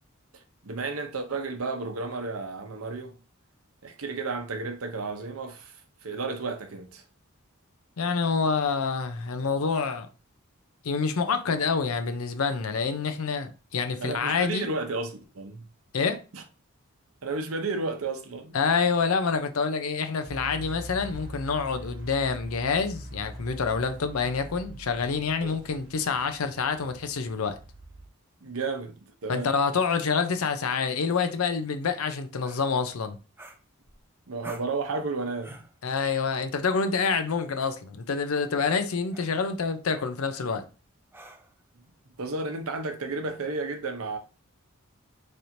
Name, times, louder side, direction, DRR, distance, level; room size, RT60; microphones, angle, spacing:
voice 1, 0.3-3.2 3.8-7.0 14.0-15.7 16.3-16.4 17.2-18.6 25.4-25.5 28.4-29.5 34.3-35.6 42.2-44.2, right 3 dB, 85° right, 0.7 m, -33 dB
voice 2, 8.0-10.1 10.8-14.7 15.9-16.2 18.5-27.5 29.3-33.2 35.8-40.6, left 5 dB, 85° left, 0.6 m, -27 dB
sound 1, 20.3-28.1, right 1 dB, 55° right, 0.9 m, -43 dB
sound 2, 32.4-32.7 33.4-34.0 34.4-34.8 35.4-35.8 37.2-37.4 38.3-38.6 39.1-39.4 41.1-41.6, right 2 dB, 10° right, 0.4 m, -47 dB
4.3 x 3.3 x 2.6 m
head